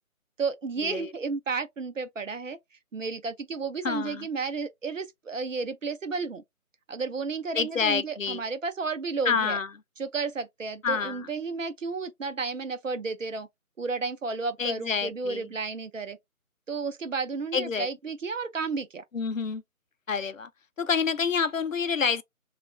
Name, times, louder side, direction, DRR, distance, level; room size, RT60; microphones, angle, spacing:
voice 1, 0.4-2.6 2.9-6.4 6.9-9.6 10.0-13.5 13.8-16.2 16.7-19.0, right 4 dB, 60° right, 0.6 m, -32 dB
voice 2, 3.8-4.3 7.6-8.4 9.3-9.7 10.8-11.3 14.6-15.4 17.5-17.9 19.1-19.6 20.1-20.5 20.8-22.2, left 5 dB, 65° left, 0.5 m, -28 dB
2.9 x 2.4 x 2.9 m
figure-of-eight pair, 155°, 43 cm